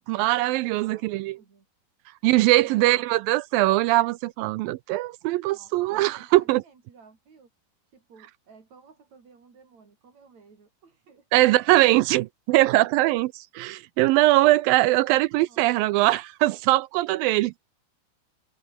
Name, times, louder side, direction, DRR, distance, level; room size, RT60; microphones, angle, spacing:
voice 1, 0.1-1.4 2.2-6.6 11.3-17.5, right 18 dB, 80° right, 2.3 m, -21 dB
voice 2, 0.8-1.7 2.6-3.0 5.5-7.5 7.9-11.5 12.0-12.1 15.5-16.1, right 5 dB, 50° right, 5.5 m, -54 dB
omnidirectional pair, 4.3 m